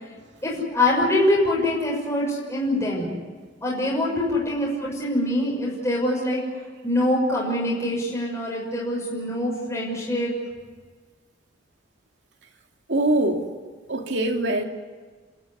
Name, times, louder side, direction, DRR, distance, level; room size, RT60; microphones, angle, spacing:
voice 1, 0.4-3.1 3.6-6.4 6.8-10.3, left 1 dB, 15° left, -5 dB, 6.2 m, -24 dB
voice 2, 12.9-13.4 13.9-14.6, right 1 dB, 65° right, 3 dB, 2.7 m, -23 dB
29.5 x 13.5 x 9.8 m, 1.5 s
head